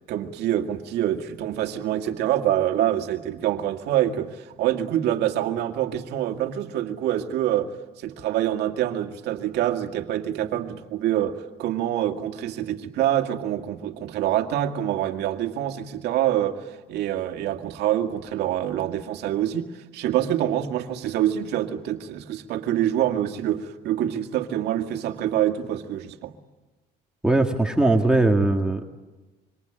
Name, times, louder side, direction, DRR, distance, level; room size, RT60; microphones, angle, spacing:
voice 1, 0.1-7.7 8.0-26.3, right 11 dB, 80° right, 5 dB, 2.1 m, -26 dB
voice 2, 27.2-28.9, right 2 dB, 5° right, 1 dB, 2.0 m, -20 dB
26.5 x 24.5 x 8.9 m, 1.2 s
cardioid pair, 110°, 17 cm